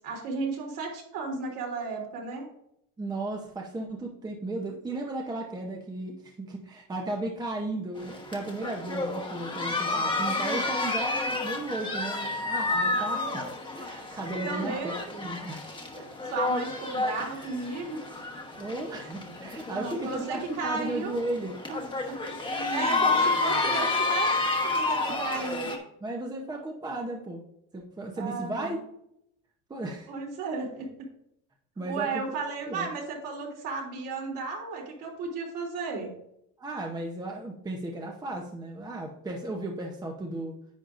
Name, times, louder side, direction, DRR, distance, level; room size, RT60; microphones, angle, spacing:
voice 1, 0.0-2.5 14.4-14.9 16.3-18.0 19.7-21.2 21.7-22.2 22.6-24.3 24.6-25.7 28.2-28.8 30.1-30.9 31.9-36.1, right 4 dB, 60° right, -1 dB, 3.4 m, -34 dB
voice 2, 3.0-15.7 15.9-16.1 17.2-17.5 18.6-21.6 22.0-22.2 22.6-22.7 25.1-25.3 26.0-27.4 27.7-28.8 29.7-30.1 31.8-32.2 32.7-32.9 36.6-40.6, right 2 dB, 10° right, 1 dB, 0.8 m, -35 dB
sound 1, 8.0-25.8, left 3 dB, 15° left, 1.1 m, -30 dB
10.5 x 8.5 x 2.5 m, 0.75 s
cardioid pair, 160°, 36 cm